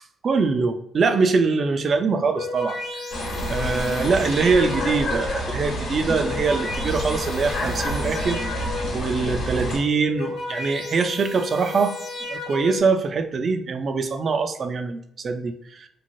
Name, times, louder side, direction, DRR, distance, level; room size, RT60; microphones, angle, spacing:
voice 1, 0.2-2.8 3.5-8.4 8.9-12.0 12.3-15.9, right 4 dB, 50° right, 8 dB, 0.4 m, -23 dB
sound 1, 2.2-5.2 6.0-9.1 9.9-12.8, left 3 dB, 90° left, 1.0 m, -34 dB
sound 2, 3.1-9.8, equal, 65° left, 1.1 m, -28 dB
3.1 x 2.4 x 2.6 m, 0.75 s
cardioid pair, 90°, 0 cm